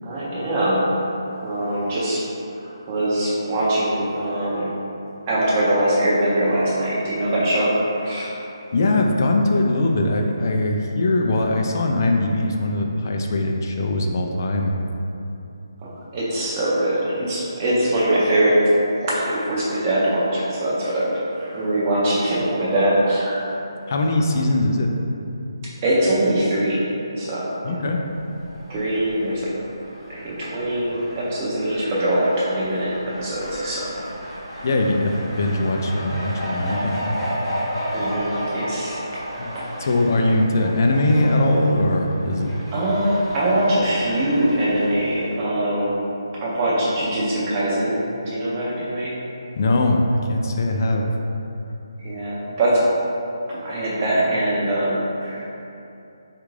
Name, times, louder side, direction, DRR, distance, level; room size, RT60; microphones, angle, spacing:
voice 1, 0.0-0.8 1.4-2.2 2.6-4.7 5.3-8.3 15.8-23.4 25.8-26.8 27.2-27.9 28.7-29.5 30.1-34.0 37.9-39.9 42.7-46.0 46.4-49.1 52.0-52.8 53.5-55.4, right 1 dB, 20° right, -7 dB, 0.6 m, -22 dB
voice 2, 8.7-14.7 23.9-24.9 27.6-28.0 34.6-37.2 39.4-39.5 39.8-42.5 49.6-51.1, left 2 dB, 40° left, 2 dB, 0.3 m, -21 dB
Fowl, 28.0-45.4, equal, 10° left, 0.8 m, -33 dB
3.4 x 2.4 x 3.2 m, 2.8 s
hypercardioid pair, 165°, 2 cm